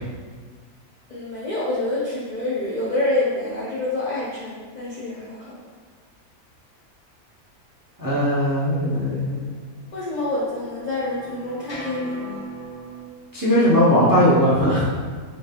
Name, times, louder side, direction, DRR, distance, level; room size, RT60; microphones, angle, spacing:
voice 1, 1.1-5.6 9.9-12.5, left 2 dB, 55° left, -7 dB, 0.4 m, -27 dB
voice 2, 8.0-9.5 13.3-14.9, equal, 20° right, -8 dB, 0.6 m, -19 dB
sound 1, 9.5-13.0, equal, 35° left, 0.9 m, -36 dB
5.2 x 3.3 x 2.2 m, 1.5 s
omnidirectional pair, 1.6 m